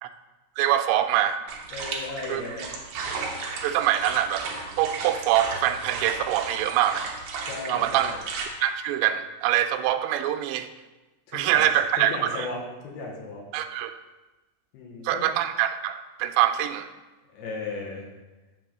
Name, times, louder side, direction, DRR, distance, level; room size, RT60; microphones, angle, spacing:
voice 1, 0.6-1.4 2.3-2.4 3.6-4.5 4.8-7.1 7.7-8.1 8.6-10.7 11.3-12.5 13.5-14.0 15.0-16.9, right 11 dB, 90° right, 8 dB, 2.8 m, -24 dB
sound 1, 1.5-8.4, right 4 dB, 75° right, 1.8 m, -34 dB
voice 2, 1.7-2.7 7.5-8.2 11.3-11.7 12.0-13.4 14.7-15.4 17.3-18.1, left 3 dB, 70° left, -1 dB, 3.0 m, -36 dB
9.1 x 3.5 x 6.7 m, 1.1 s
omnidirectional pair, 4.9 m